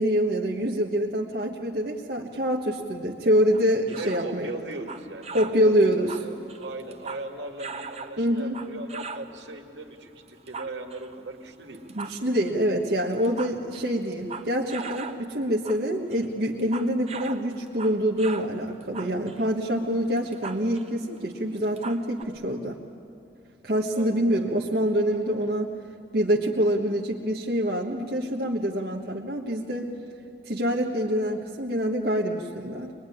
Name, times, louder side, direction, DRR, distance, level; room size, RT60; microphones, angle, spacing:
voice 1, 0.0-4.5 5.3-6.1 8.2-8.6 11.9-22.8 23.6-25.7 26.1-29.9 30.4-32.9, equal, 60° right, -2 dB, 1.4 m, -25 dB
sound 1, 3.5-4.3 4.7-5.6 5.9-7.3 7.6-9.3 10.3-11.1 11.7-12.5 13.1-15.2 15.5-15.8 16.1-18.5 18.8-20.9 21.2-21.3 21.6-22.2, right 4 dB, 35° right, 1.1 m, -39 dB
voice 2, 3.9-11.8 23.9-24.5, right 2 dB, 75° right, 3 dB, 2.2 m, -39 dB
24.0 x 22.0 x 10.0 m, 2.5 s
head